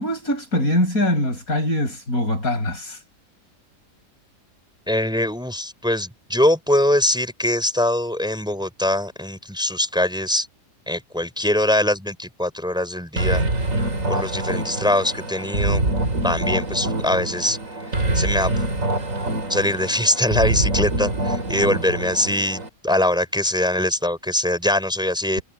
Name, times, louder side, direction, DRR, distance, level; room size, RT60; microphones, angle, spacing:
voice 1, 0.0-3.0, left 1 dB, 60° left, 7.6 m, -23 dB
voice 2, 4.9-10.5 10.9-13.4 14.1-15.8 16.2-17.6 18.1-18.5 19.5-25.4, left 1 dB, 5° right, 3.9 m, -22 dB
sound 1, 13.2-22.7, right 1 dB, 50° right, 3.7 m, -25 dB
omnidirectional pair, 1.7 m